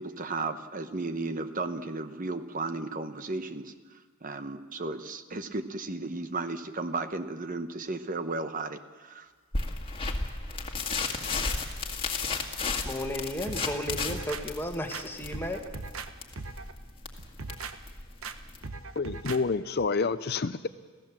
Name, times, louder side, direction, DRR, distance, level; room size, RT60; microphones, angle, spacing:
voice 1, 0.0-3.7 4.2-9.3, right 3 dB, 40° right, 10 dB, 0.9 m, -34 dB
sound 1, 9.5-18.7, left 4 dB, 25° left, 1.9 m, -33 dB
voice 2, 12.8-15.6, left 1 dB, 10° left, 3 dB, 1.8 m, -34 dB
sound 2, 13.5-14.4 14.9-16.1 16.4-16.7 17.2-17.7 18.2-18.4 18.6-19.4 19.8-19.9, right 4 dB, 80° right, 1.1 m, -39 dB
voice 3, 19.0-20.7, left 4 dB, 50° left, 12 dB, 0.5 m, -28 dB
28.5 x 16.0 x 7.4 m, 1.5 s
head